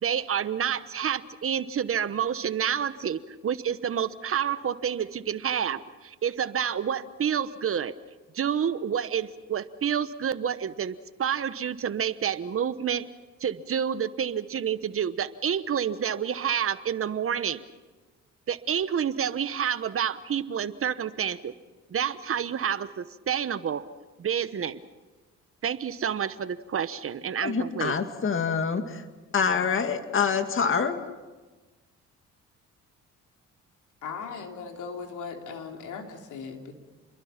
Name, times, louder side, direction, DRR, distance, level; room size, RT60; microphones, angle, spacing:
voice 1, 0.0-7.9 8.3-13.1 13.4-17.6 18.5-21.5 21.9-23.9 24.2-24.8 25.6-28.0, right 8 dB, 45° right, 14 dB, 1.1 m, -29 dB
voice 2, 27.4-29.0 29.3-31.0, left 6 dB, 45° left, 8 dB, 2.1 m, -26 dB
voice 3, 34.0-36.7, left 5 dB, 75° left, 3 dB, 3.5 m, -38 dB
29.5 x 22.5 x 5.9 m, 1.3 s
cardioid pair, 90°, 30 cm